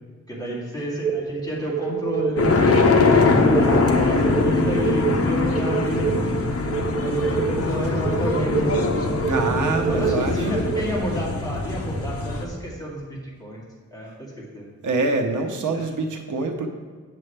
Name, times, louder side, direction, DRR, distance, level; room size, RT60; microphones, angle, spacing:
voice 1, 0.3-2.5 3.1-6.3 7.0-8.8 9.9-13.6 13.9-14.1 14.5-14.6 15.7-15.8, equal, 10° left, -5 dB, 2.0 m, -30 dB
sound 1, 1.0-11.0, right 7 dB, 30° right, 0.4 m, -27 dB
sound 2, 2.4-12.4, left 3 dB, 50° left, 0.8 m, -22 dB
voice 2, 9.2-10.5 14.8-16.7, right 3 dB, 85° right, 4 dB, 0.8 m, -25 dB
7.6 x 7.4 x 3.3 m, 1.5 s
wide cardioid pair, 140°, 30 cm